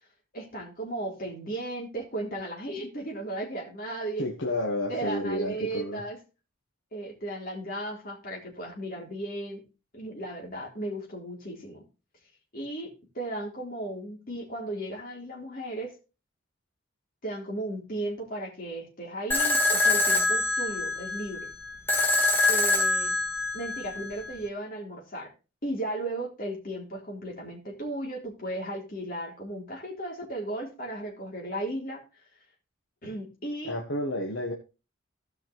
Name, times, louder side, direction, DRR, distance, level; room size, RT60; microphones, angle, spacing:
voice 1, 0.3-4.2 4.9-6.2 6.9-9.6 9.9-11.8 12.5-15.9 17.2-21.5 22.5-23.2 23.5-25.3 25.6-32.0 33.0-33.8, right 1 dB, 45° left, -1 dB, 3.5 m, -35 dB
voice 2, 4.2-6.0 33.6-34.5, left 1 dB, 65° left, 1 dB, 1.4 m, -30 dB
sound 1, 19.3-24.3, left 2 dB, 10° left, 1.9 m, -25 dB
16.5 x 5.7 x 3.1 m, 0.30 s
head